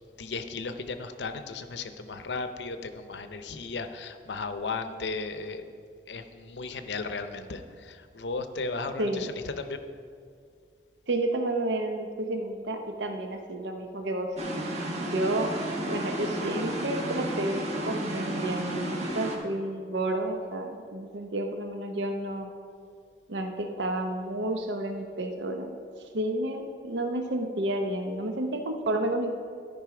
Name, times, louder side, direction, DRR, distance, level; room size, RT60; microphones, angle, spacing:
voice 1, 0.2-5.7 6.1-9.8, left 3 dB, 75° left, 9 dB, 0.6 m, -35 dB
voice 2, 9.0-9.3 11.1-14.3 15.0-15.5 15.8-22.5 23.3-25.7 26.1-29.3, right 1 dB, 80° right, 5 dB, 0.7 m, -31 dB
sound 1, 14.4-19.4, right 1 dB, 40° right, 1.2 m, -32 dB
12.5 x 5.5 x 4.8 m, 2.3 s
head